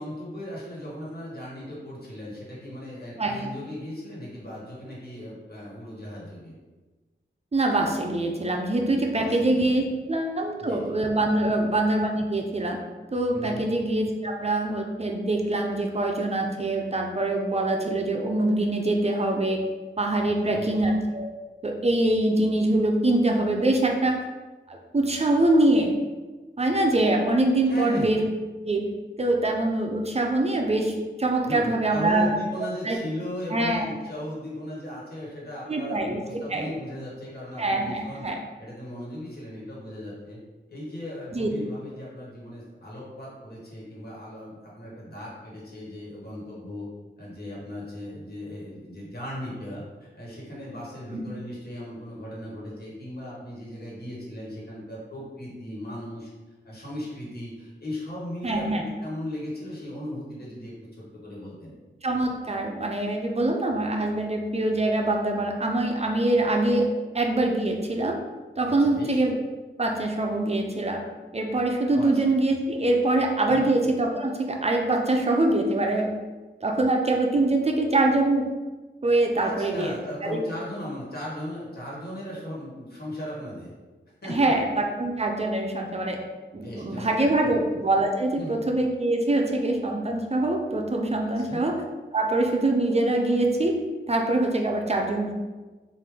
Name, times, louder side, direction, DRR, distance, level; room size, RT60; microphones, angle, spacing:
voice 1, 0.0-6.5 9.1-9.7 10.6-11.0 13.3-13.6 20.2-20.7 27.6-28.2 31.4-38.2 38.6-40.4 40.7-46.9 47.2-49.8 50.1-56.3 56.6-61.8 68.7-69.2 71.9-72.1 73.4-73.7 79.3-83.7 84.2-84.5 86.5-87.1 87.4-87.6 88.4-88.6 91.3-91.6, left 1 dB, 55° left, -6 dB, 1.5 m, -37 dB
voice 2, 7.5-12.8 13.1-19.6 20.0-21.3 21.6-24.2 24.7-25.9 26.6-28.2 28.6-28.9 29.2-32.3 32.8-33.0 33.5-33.9 35.7-36.7 37.6-38.4 41.3-41.5 51.1-51.2 58.4-58.8 62.0-66.9 67.1-68.2 68.6-69.4 69.8-71.0 71.3-76.1 76.6-78.5 79.0-79.9 80.2-80.4 84.3-86.2 86.5-91.8 92.1-93.8 94.1-95.3, right 2 dB, 35° right, 2 dB, 0.5 m, -24 dB
3.3 x 2.5 x 3.5 m, 1.3 s
cardioid pair, 55°, 20 cm